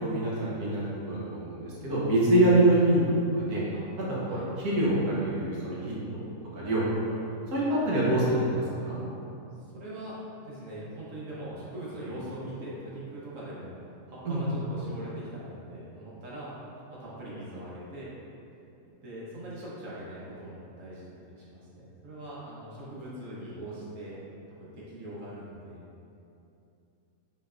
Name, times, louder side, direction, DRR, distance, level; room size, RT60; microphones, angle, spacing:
voice 1, 0.0-3.0 3.3-3.6 4.1-6.2 6.5-7.1 7.5-9.0 14.2-14.4, right 1 dB, 90° right, -7 dB, 1.4 m, -25 dB
voice 2, 6.3-6.7 7.9-8.0 9.7-10.2 10.4-13.7 14.1-16.6 16.9-18.1 19.0-24.2 24.5-25.9, right 1 dB, 65° right, -7 dB, 1.2 m, -41 dB
4.5 x 3.3 x 2.4 m, 2.8 s
omnidirectional pair, 1.5 m